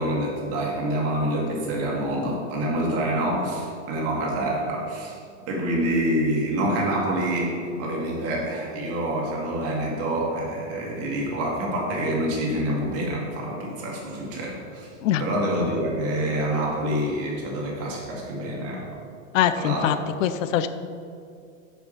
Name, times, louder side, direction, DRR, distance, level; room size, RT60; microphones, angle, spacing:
voice 1, 0.0-5.2 5.5-14.9 15.2-18.9 19.6-20.1, right 1 dB, 40° right, -2 dB, 1.7 m, -27 dB
voice 2, 19.3-19.9 20.2-20.7, left 11 dB, 85° left, 11 dB, 0.5 m, -22 dB
5.9 x 4.6 x 5.0 m, 2.3 s
supercardioid pair, 140°, 38 cm